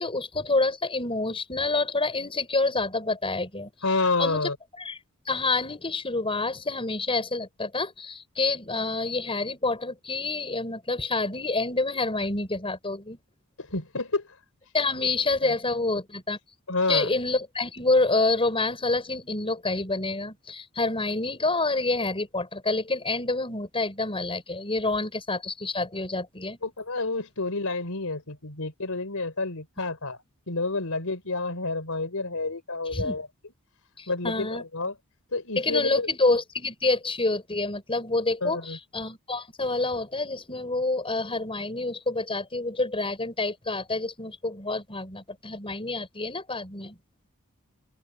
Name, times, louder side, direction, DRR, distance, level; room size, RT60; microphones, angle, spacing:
voice 1, 0.0-3.7 4.2-4.5 4.8-5.0 5.3-13.2 14.7-16.4 16.9-26.6 32.9-33.2 34.0-34.6 35.6-47.0, left 3 dB, 25° left, 5.9 m, -27 dB
voice 2, 3.8-4.6 13.6-14.3 15.4-15.5 16.7-17.1 26.6-30.2 30.5-33.3 34.1-34.9 35.3-36.1 38.4-38.8, left 3 dB, 70° left, 4.8 m, -29 dB
open air
head